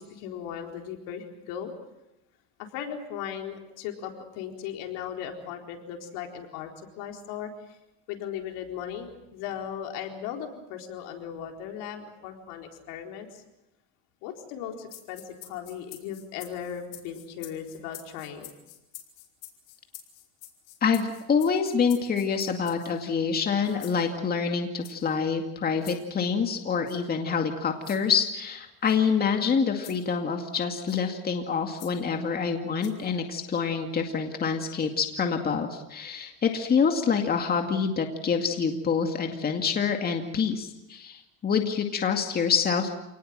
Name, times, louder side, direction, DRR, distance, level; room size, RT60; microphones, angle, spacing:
voice 1, 0.0-1.7 2.6-7.8 8.1-13.4 14.2-18.5, left 8 dB, 70° left, 3 dB, 4.2 m, -37 dB
sound 1, 14.9-23.1 23.6-24.0 24.8-25.1 25.8-26.0 26.9-27.0 27.8-28.0 28.8-29.0 29.8-30.0 30.9-31.0 31.8-31.9 32.8-33.1, left 14 dB, 85° left, 4.9 m, -47 dB
voice 2, 20.8-42.9, left 6 dB, 30° left, 4 dB, 2.3 m, -26 dB
28.0 x 19.5 x 7.6 m, 0.92 s
supercardioid pair, 120°, 33 cm